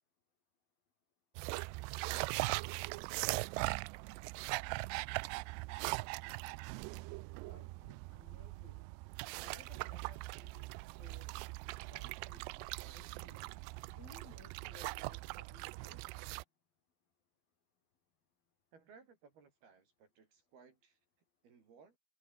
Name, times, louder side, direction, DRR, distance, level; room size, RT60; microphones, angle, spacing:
sound 1, 1.4-16.4, right 24 dB, 90° right, 2.4 m, -41 dB
voice 1, 6.2-6.6 7.4-8.9 9.4-11.3 11.9-13.5 13.9-16.2, left 6 dB, 55° left, 5.6 m, -62 dB
voice 2, 18.7-21.0 21.4-22.0, right 5 dB, 60° right, 5.8 m, -62 dB
omnidirectional pair, 5.3 m